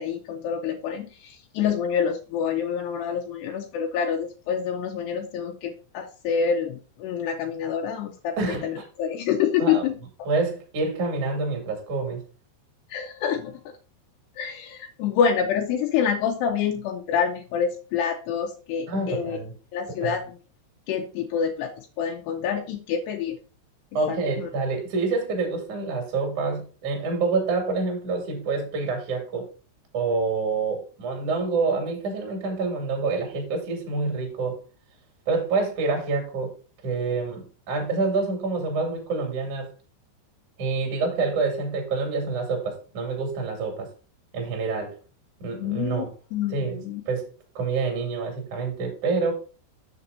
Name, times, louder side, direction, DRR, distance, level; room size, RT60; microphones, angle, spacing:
voice 1, 0.0-9.9 10.2-10.3 12.9-13.6 14.4-19.4 19.7-20.4 20.9-23.4 24.1-24.5 45.6-46.1 46.3-47.0, left 7 dB, 85° left, 3 dB, 2.4 m, -27 dB
voice 2, 8.4-8.8 9.6-9.8 10.2-12.2 18.9-19.5 20.0-20.2 23.9-29.4 29.9-34.6 35.3-36.5 36.8-39.7 40.6-43.9 44.3-44.9 45.4-46.1 46.5-46.8 47.1-47.2 47.5-49.3, right 4 dB, 45° right, 3 dB, 3.0 m, -27 dB
7.6 x 6.8 x 4.0 m, 0.36 s
omnidirectional pair, 5.9 m